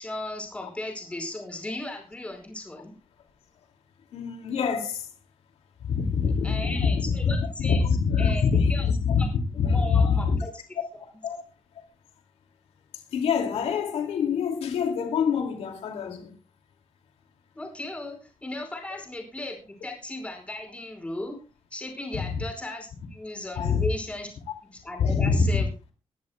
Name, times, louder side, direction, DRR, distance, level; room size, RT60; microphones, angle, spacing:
voice 1, 0.0-2.9 6.4-7.8 8.2-8.4 8.7-8.9 9.2-9.3 9.7-10.5 17.5-21.3 21.7-24.3 24.8-25.7, left 2 dB, 10° left, 5.0 m, -36 dB
voice 2, 4.1-5.1 5.8-7.3 7.6-9.2 9.5-10.4 11.2-11.4 11.8-11.9 13.1-16.3 22.1-22.4 23.6-23.9 25.0-25.6, left 5 dB, 80° left, 2.4 m, -25 dB
21.0 x 14.0 x 2.3 m
wide cardioid pair, 170°, 11 cm